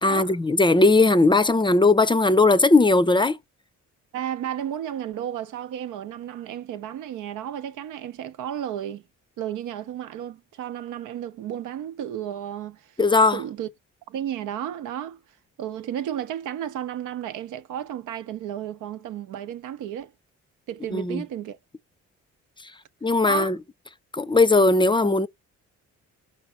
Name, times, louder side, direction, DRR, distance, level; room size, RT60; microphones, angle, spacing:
voice 1, 0.0-3.4 13.0-13.4 20.9-21.2 23.0-23.6 24.1-25.3, left 3 dB, 15° left, 0.5 m, -18 dB
voice 2, 4.1-9.0 9.4-12.9 13.3-13.7 14.1-15.2 15.6-20.1 20.7-21.6 23.2-23.6, right 10 dB, 80° right, 0.8 m, -33 dB
5.8 x 4.6 x 5.6 m
cardioid pair, 90°, 30 cm